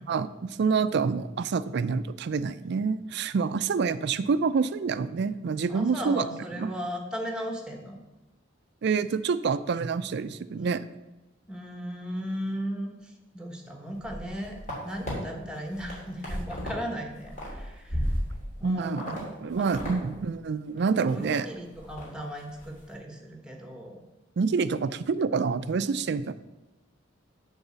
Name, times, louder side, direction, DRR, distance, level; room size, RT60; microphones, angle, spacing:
voice 1, 0.1-6.2 6.6-6.7 8.8-10.8 18.6-21.5 24.4-26.3, right 5 dB, 60° right, 14 dB, 0.4 m, -27 dB
voice 2, 5.7-8.0 11.5-18.1 18.6-19.2 19.5-19.7 21.1-24.0, equal, 5° right, 2 dB, 1.2 m, -36 dB
sound 1, 13.9-15.1 15.6-16.8 17.1-18.6 19.0-19.2 19.5-20.0 20.2-20.3 20.8-21.4 21.7-22.1 22.4-22.7, equal, 40° left, 3.0 m, -34 dB
7.9 x 4.1 x 6.9 m, 1.0 s
head